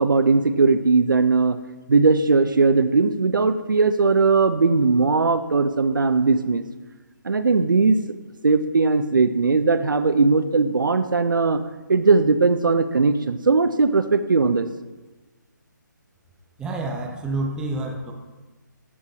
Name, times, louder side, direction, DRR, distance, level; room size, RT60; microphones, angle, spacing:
voice 1, 0.0-1.6 1.9-6.6 7.2-8.0 8.4-11.6 11.9-14.7, right 4 dB, 90° right, 10 dB, 0.5 m, -19 dB
voice 2, 16.6-18.1, right 2 dB, 10° right, 1 dB, 0.6 m, -28 dB
13.0 x 4.7 x 2.7 m, 1.2 s
figure-of-eight pair, 150°, 11 cm